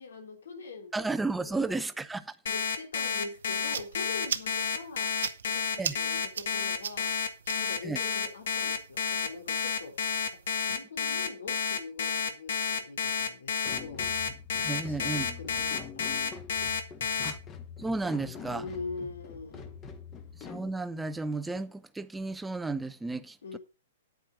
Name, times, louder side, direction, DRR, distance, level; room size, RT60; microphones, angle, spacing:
voice 1, 0.0-1.1 1.4-1.8 2.4-7.2 7.6-14.3 14.6-16.3 18.5-19.7 23.4-23.6, left 4 dB, 90° left, 2.9 m, -44 dB
voice 2, 0.9-2.3 5.8-6.0 7.8-8.0 14.6-15.4 17.2-17.4 17.8-18.6 20.4-23.6, right 3 dB, 5° right, 0.7 m, -33 dB
Alarm, 2.5-17.3, left 6 dB, 70° left, 1.9 m, -30 dB
sound 1, 3.3-10.8, right 7 dB, 85° right, 1.0 m, -41 dB
sound 2, 13.6-20.7, left 6 dB, 20° left, 1.4 m, -45 dB
9.4 x 8.6 x 4.8 m
hypercardioid pair, 150°, 0 cm